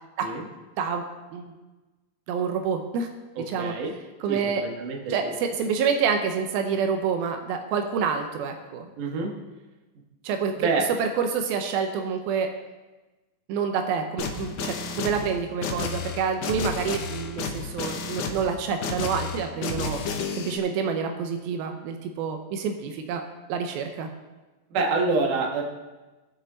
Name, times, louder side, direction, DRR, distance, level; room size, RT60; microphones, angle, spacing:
voice 1, 2.3-3.1 3.5-3.8 4.2-4.6 5.1-8.9 10.2-10.7 11.0-12.5 13.5-20.0 20.3-23.2 23.5-24.1, right 6 dB, 90° right, 5 dB, 2.7 m, -27 dB
voice 2, 3.6-3.9 4.3-5.3 9.0-9.3 10.6-10.8 24.7-25.6, right 3 dB, 65° right, 1 dB, 2.8 m, -26 dB
sound 1, 14.2-20.6, left 5 dB, 70° left, 1.6 m, -32 dB
19.0 x 6.3 x 4.0 m, 1.2 s
omnidirectional pair, 4.2 m